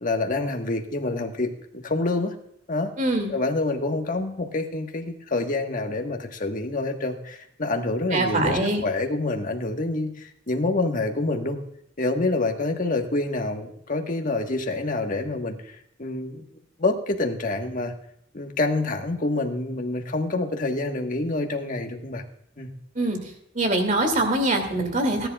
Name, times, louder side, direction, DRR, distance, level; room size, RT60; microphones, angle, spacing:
voice 1, 0.0-2.3 2.7-2.9 3.3-11.6 12.0-16.4 16.8-17.9 18.3-22.2 22.6-22.7, left 2 dB, 45° left, 4 dB, 1.4 m, -27 dB
voice 2, 3.0-3.3 8.1-8.8 23.0-23.2 23.5-25.3, right 1 dB, 45° right, 5 dB, 2.4 m, -23 dB
18.5 x 10.5 x 2.4 m, 0.75 s
head